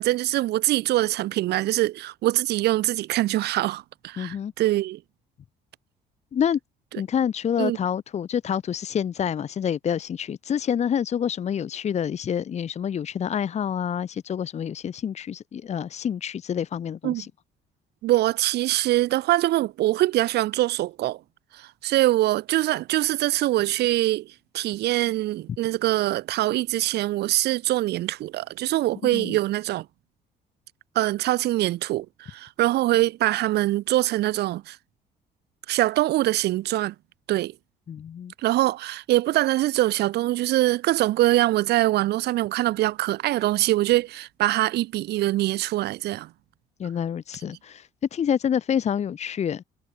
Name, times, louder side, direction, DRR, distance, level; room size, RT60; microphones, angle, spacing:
voice 1, 0.0-5.0 7.6-7.8 17.0-17.2 18.0-21.2 21.5-29.9 30.9-34.8 35.7-36.9 37.3-37.5 38.4-46.3, right 16 dB, 75° right, 2.9 m, -23 dB
voice 2, 4.2-4.5 6.3-6.6 7.0-17.3 29.1-29.4 37.9-38.3 46.8-49.6, left 8 dB, 40° left, 1.2 m, -27 dB
cardioid pair, 110°, 17 cm